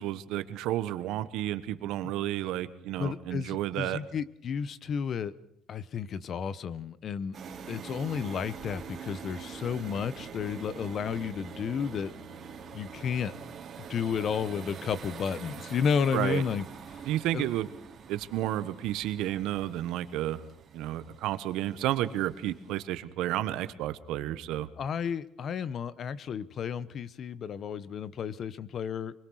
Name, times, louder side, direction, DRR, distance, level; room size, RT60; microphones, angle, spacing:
voice 1, 0.0-4.0 16.1-16.4 17.0-17.7 18.1-20.4 20.7-24.7, right 13 dB, 80° right, 13 dB, 1.3 m, -31 dB
voice 2, 3.0-5.3 5.7-7.3 7.7-12.1 12.7-13.3 13.8-17.0 17.3-17.5 24.8-29.1, left 7 dB, 40° left, 18 dB, 0.9 m, -32 dB
sound 1, 7.3-22.8, right 6 dB, 35° right, 2.8 m, -45 dB
24.5 x 21.5 x 6.4 m, 0.73 s
cardioid pair, 150°, 0 cm